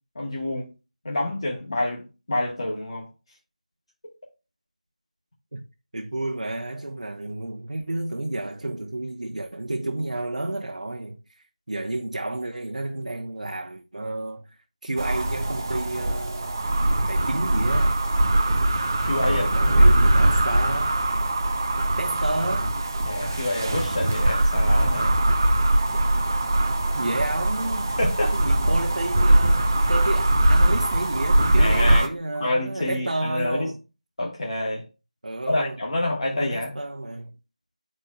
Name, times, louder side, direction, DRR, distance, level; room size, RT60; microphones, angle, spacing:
voice 1, 0.1-0.7 1.0-3.1 19.0-19.9 23.0-25.2 28.0-28.4 31.6-32.1 32.4-33.7 34.2-34.8 35.5-36.7, left 1 dB, 45° left, 1.1 m, -27 dB
voice 2, 5.9-14.5 14.8-16.6 17.1-18.0 19.1-20.9 22.0-22.7 26.9-27.9 28.3-33.8 35.2-35.8 36.3-37.3, right 2 dB, 70° right, 0.8 m, -31 dB
sound 1, 15.0-32.1, right 1 dB, 25° right, 0.5 m, -21 dB
10.0 x 4.3 x 2.3 m
figure-of-eight pair, 170°, 4 cm